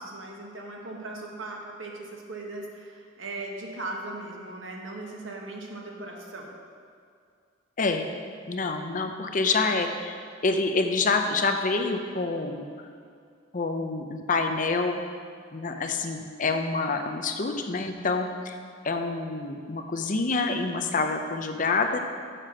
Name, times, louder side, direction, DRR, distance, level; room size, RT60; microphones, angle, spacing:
voice 1, 0.0-6.5, right 2 dB, 80° right, 0 dB, 1.5 m, -38 dB
voice 2, 7.8-8.1 8.5-10.2 10.4-12.6 13.5-15.0 15.5-18.6 18.8-22.0, left 3 dB, 40° left, 5 dB, 0.6 m, -27 dB
6.7 x 6.4 x 7.4 m, 2.3 s
head